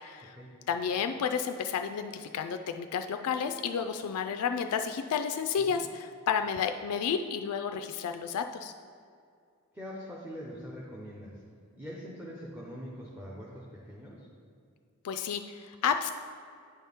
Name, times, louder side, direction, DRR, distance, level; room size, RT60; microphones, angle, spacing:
voice 1, 0.0-0.4 0.7-8.7 15.0-16.2, left 7 dB, 80° left, 6 dB, 0.3 m, -31 dB
voice 2, 9.7-11.3 11.8-14.3, equal, 10° right, -5 dB, 0.7 m, -43 dB
9.8 x 4.3 x 3.5 m, 2.3 s
head